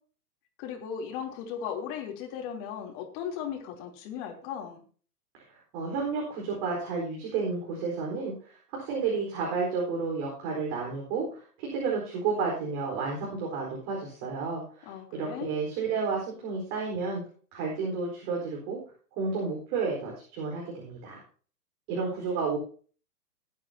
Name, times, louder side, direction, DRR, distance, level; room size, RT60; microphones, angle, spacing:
voice 1, 0.6-4.8 14.8-15.5, left 8 dB, 40° left, 2 dB, 3.5 m, -37 dB
voice 2, 5.3-17.2 17.5-18.8 19.2-21.2 21.9-22.6, right 4 dB, 45° right, -2 dB, 4.5 m, -31 dB
18.5 x 9.4 x 2.9 m, 0.41 s
hypercardioid pair, 115°, 45 cm